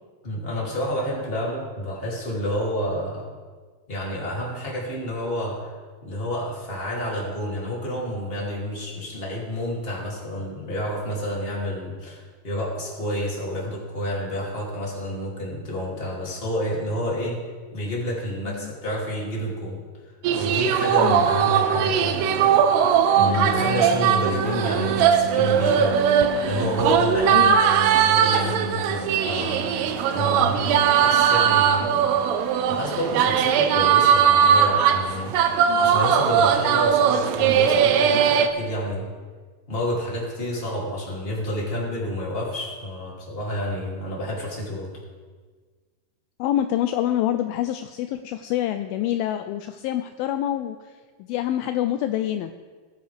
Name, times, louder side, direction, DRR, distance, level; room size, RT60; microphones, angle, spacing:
voice 1, 0.2-3.3 3.9-5.7 6.0-26.1 26.4-32.0 32.4-35.4 35.8-39.1 39.7-45.0, equal, 15° left, -4 dB, 2.4 m, -29 dB
sound 1, 20.2-38.5, right 8 dB, 90° right, 2.8 m, -20 dB
sound 2, 23.1-38.0, right 7 dB, 75° right, 0.7 m, -37 dB
voice 2, 46.4-50.9 51.2-52.5, left 12 dB, 85° left, 8 dB, 2.1 m, -26 dB
19.0 x 10.5 x 3.5 m, 1.5 s
omnidirectional pair, 4.7 m